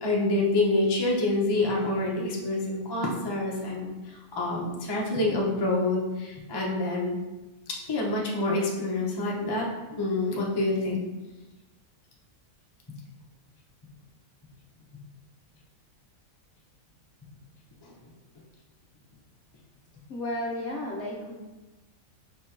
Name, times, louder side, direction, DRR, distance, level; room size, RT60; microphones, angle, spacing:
voice 1, 0.0-7.2 7.7-9.7 10.0-11.0, left 2 dB, 30° left, -4 dB, 0.4 m, -27 dB
voice 2, 20.1-21.4, left 1 dB, 60° left, -2 dB, 0.8 m, -33 dB
5.0 x 3.7 x 2.8 m, 1.1 s
omnidirectional pair, 1.7 m